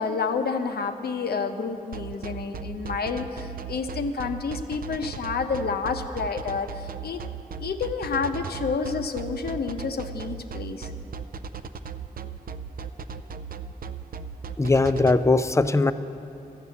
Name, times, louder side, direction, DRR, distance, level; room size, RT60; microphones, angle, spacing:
voice 1, 0.0-7.2 7.6-10.9, left 5 dB, 90° left, 7 dB, 0.7 m, -29 dB
sound 1, 1.9-15.1, right 6 dB, 65° right, 0.4 m, -36 dB
voice 2, 14.6-15.9, left 3 dB, 20° left, 12 dB, 0.4 m, -20 dB
12.0 x 6.7 x 8.2 m, 2.8 s
wide cardioid pair, 75°, 16 cm